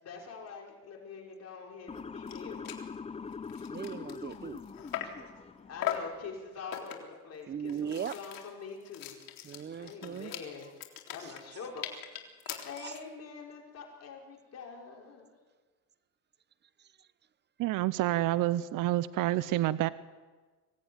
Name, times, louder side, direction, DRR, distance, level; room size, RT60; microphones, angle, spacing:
voice 1, 0.0-2.8 5.7-9.2 9.8-10.7 11.1-11.9 12.6-15.3, left 5 dB, 40° left, 0 dB, 5.3 m, -45 dB
Motor vehicle (road) / Siren, 1.9-6.0, left 5 dB, 15° left, 0.8 m, -43 dB
sound 1, 2.0-2.1 2.3-2.4 2.6-2.9 3.3-5.3 5.8-6.2 6.7-7.2 7.7-13.1, left 12 dB, 55° left, 3.7 m, -40 dB
voice 2, 3.7-4.6 7.5-8.1 9.4-10.3 11.2-11.3 12.5-12.9, right 8 dB, 25° right, 18 dB, 0.8 m, -39 dB
voice 3, 17.6-19.9, right 15 dB, 50° right, 16 dB, 0.9 m, -28 dB
25.0 x 18.0 x 9.6 m, 1.4 s
supercardioid pair, 115°, 41 cm